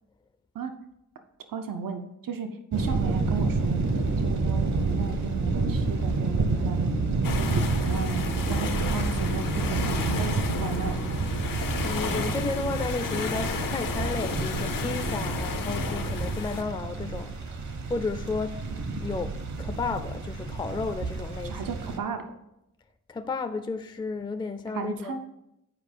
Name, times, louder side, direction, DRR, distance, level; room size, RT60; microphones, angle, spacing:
voice 1, 1.5-3.8 4.2-11.0 21.5-22.2 24.7-25.2, right 5 dB, 85° right, 0.7 m, -34 dB
sound 1, 2.7-22.0, right 3 dB, 60° right, 0.9 m, -29 dB
sound 2, 7.2-16.6, left 5 dB, 85° left, 0.8 m, -33 dB
Piano, 9.5-16.2, right 3 dB, 40° right, 0.5 m, -44 dB
voice 2, 11.8-18.6 19.0-21.7 23.1-25.2, left 3 dB, 15° left, 0.4 m, -33 dB
8.4 x 4.9 x 5.1 m
wide cardioid pair, 140°, 33 cm